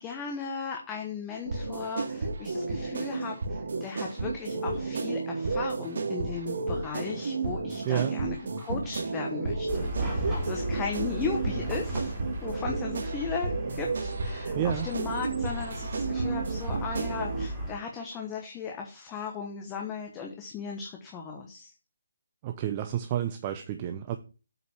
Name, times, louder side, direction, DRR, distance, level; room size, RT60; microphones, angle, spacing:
voice 1, 0.0-12.1 12.4-21.7, left 6 dB, 15° left, 2 dB, 1.1 m, -37 dB
sound 1, 1.5-17.5, right 3 dB, 60° right, 1.9 m, -32 dB
Chatter / Car passing by / Traffic noise roadway noise, 9.7-17.7, right 1 dB, 10° right, 3.0 m, -35 dB
voice 2, 14.5-14.9 22.4-24.2, right 11 dB, 25° right, 7 dB, 0.7 m, -30 dB
8.0 x 5.1 x 7.1 m, 0.33 s
hypercardioid pair, 165°, 0 cm